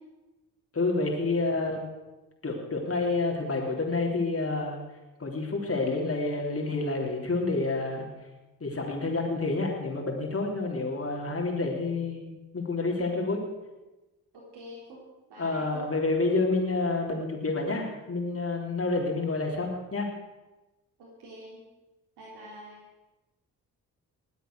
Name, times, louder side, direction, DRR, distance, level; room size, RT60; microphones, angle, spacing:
voice 1, 0.7-1.8 2.4-4.8 5.2-8.1 8.6-13.4 15.4-20.1, left 3 dB, 35° left, 0 dB, 3.6 m, -29 dB
voice 2, 14.3-15.0 15.3-15.8 21.0-21.6 22.2-22.8, equal, 85° right, -5 dB, 3.4 m, -46 dB
21.0 x 8.0 x 6.5 m, 1.1 s
supercardioid pair, 55°, 39 cm